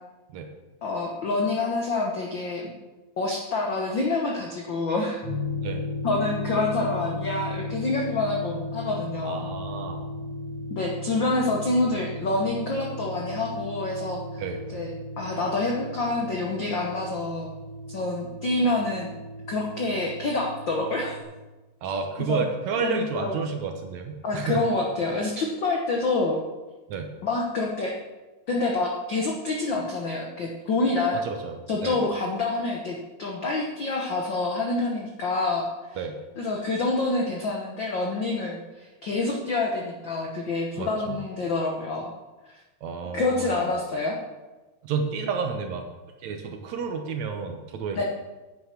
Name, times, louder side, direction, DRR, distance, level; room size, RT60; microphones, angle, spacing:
voice 1, 0.8-2.7 3.2-5.2 6.0-9.4 10.7-14.4 14.7-14.9 15.2-17.5 17.9-19.1 19.5-21.1 22.3-22.4 22.8-23.4 24.2-26.4 27.2-28.0 28.5-31.2 31.7-36.0 36.4-42.1 43.1-44.2 47.9-48.0, left 2 dB, 75° left, 0 dB, 1.0 m, -27 dB
sound 1, 5.2-21.2, left 2 dB, 45° left, 2.5 m, -35 dB
voice 2, 9.2-10.0 14.4-14.6 21.8-24.6 26.9-27.1 31.1-31.6 31.8-32.0 36.0-36.2 40.8-41.2 42.8-43.7 44.8-45.9 46.2-48.0, right 5 dB, 65° right, 5 dB, 2.0 m, -31 dB
9.5 x 9.3 x 5.9 m, 1.2 s
omnidirectional pair, 3.9 m